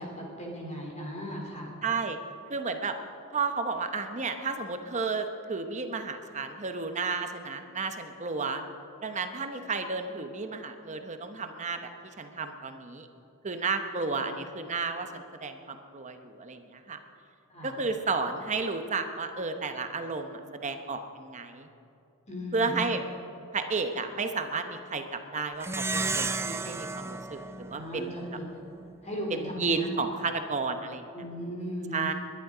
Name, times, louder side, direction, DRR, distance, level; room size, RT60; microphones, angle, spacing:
voice 1, 0.0-1.7 14.2-14.3 17.5-17.8 22.3-22.8 27.7-28.5 29.0-29.9 31.1-32.1, equal, 35° left, -1 dB, 3.3 m, -37 dB
voice 2, 1.8-2.2 2.5-3.0 3.3-8.6 9.0-13.1 13.4-17.0 17.6-21.7 22.5-23.0 23.5-28.2 29.4-31.1 31.9-32.1, right 4 dB, 35° right, 7 dB, 0.9 m, -32 dB
Plucked string instrument, 25.6-28.4, right 3 dB, 10° right, 0.4 m, -33 dB
21.0 x 11.0 x 5.0 m, 2.6 s
head